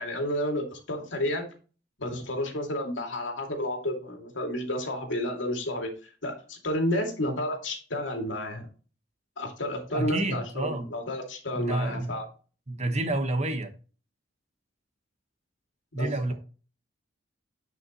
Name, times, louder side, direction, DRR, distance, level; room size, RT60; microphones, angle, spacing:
voice 1, 0.0-1.4 2.0-8.7 9.4-12.3 16.0-16.3, left 1 dB, 85° left, 2.4 m, -31 dB
voice 2, 9.9-10.9 11.5-12.2 12.7-13.7 15.9-16.3, right 2 dB, 35° right, 1.2 m, -29 dB
10.5 x 5.5 x 3.0 m
head